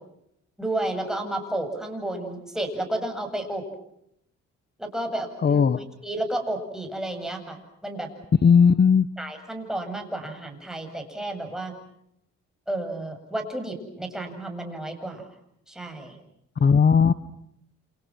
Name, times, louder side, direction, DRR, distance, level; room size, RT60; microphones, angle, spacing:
voice 1, 0.6-3.6 4.8-5.6 6.0-7.6 7.8-8.1 9.2-11.7 12.7-15.3 15.7-16.2, right 1 dB, ahead, 3 dB, 7.8 m, -31 dB
voice 2, 5.4-5.8 8.4-9.1 16.6-17.1, left 6 dB, 35° left, 14 dB, 1.0 m, -17 dB
29.0 x 28.5 x 6.1 m, 0.74 s
cardioid pair, 90°, 30 cm